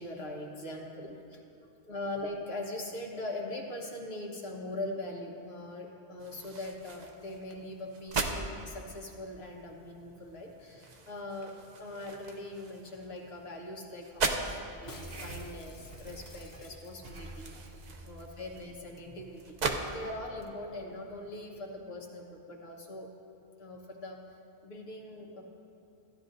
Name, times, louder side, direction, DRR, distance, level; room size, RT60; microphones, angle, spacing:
voice 1, 0.0-1.4 1.8-11.5 11.8-19.6 19.9-23.1 23.6-24.2 24.6-25.4, left 1 dB, 75° left, -1 dB, 1.6 m, -41 dB
sound 1, 6.2-19.8, right 4 dB, 50° right, 0.7 m, -40 dB
sound 2, 14.8-21.7, right 1 dB, 70° right, 1.0 m, -49 dB
Shatter, 14.9-17.6 17.9-18.0 18.2-18.6 18.9-19.0, left 3 dB, 35° left, 0.3 m, -54 dB
15.5 x 11.0 x 2.6 m, 2.6 s
omnidirectional pair, 1.1 m